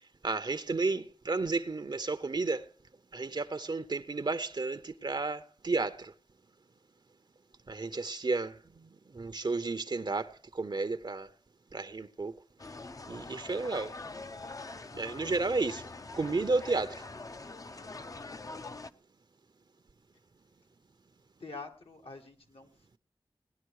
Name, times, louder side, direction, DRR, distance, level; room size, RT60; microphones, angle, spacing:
voice 1, 0.2-2.7 3.1-6.1 7.7-11.3 11.7-12.3 13.1-14.0 14.9-17.1, right 3 dB, 50° right, 0.7 m, -32 dB
sound 1, 12.6-18.9, left 3 dB, 35° left, 0.6 m, -44 dB
voice 2, 21.4-23.0, left 3 dB, 75° left, 1.8 m, -46 dB
17.5 x 10.5 x 4.7 m
wide cardioid pair, 75°, 10 cm